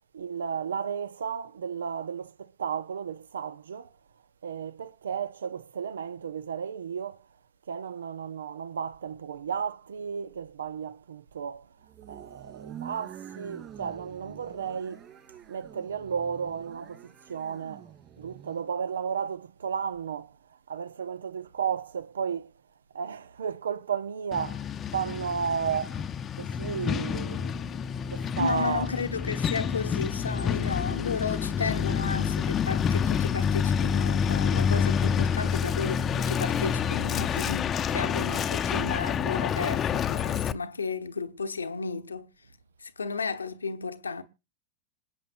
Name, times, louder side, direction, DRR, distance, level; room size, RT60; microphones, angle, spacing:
voice 1, 0.1-3.9 4.4-7.3 7.7-15.1 15.5-17.9 18.2-22.5 22.9-26.1 26.4-28.9, right 7 dB, 70° right, 0.7 m, -34 dB
sound 1, 11.9-18.7, right 9 dB, 30° right, 3.5 m, -47 dB
Truck, 24.3-40.5, left 7 dB, 25° left, 0.7 m, -28 dB
voice 2, 28.4-42.3 42.8-44.2, left 5 dB, 80° left, 1.0 m, -33 dB
26.5 x 8.9 x 2.5 m
figure-of-eight pair, 90°, 0 cm